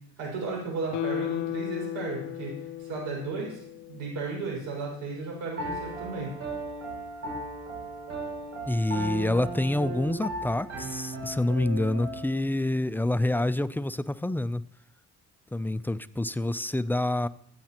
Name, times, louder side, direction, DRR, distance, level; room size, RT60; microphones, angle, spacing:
voice 1, 0.2-3.6 3.9-6.3, right 4 dB, 90° right, -2 dB, 5.5 m, -34 dB
Guitar, 0.9-4.2 4.5-4.6, left 13 dB, 75° left, 0.7 m, -35 dB
Piano, 5.6-12.4, right 2 dB, 55° right, 2.9 m, -36 dB
voice 2, 8.7-14.6 15.5-17.3, left 1 dB, 5° left, 14 dB, 0.3 m, -27 dB
15.5 x 8.6 x 2.9 m, 0.66 s
cardioid pair, 90°, 30 cm